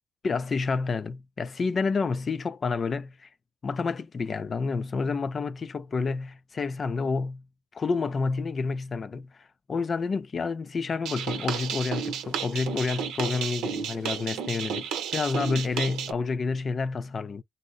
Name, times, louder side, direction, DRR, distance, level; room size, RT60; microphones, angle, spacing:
voice 1, 0.2-3.3 3.6-7.4 7.7-17.4, left 4 dB, 40° left, 0.3 m, -29 dB
sound 1, 11.0-16.1, right 8 dB, 85° right, 0.7 m, -32 dB
2.6 x 2.0 x 3.7 m
cardioid pair, 90°, 0 cm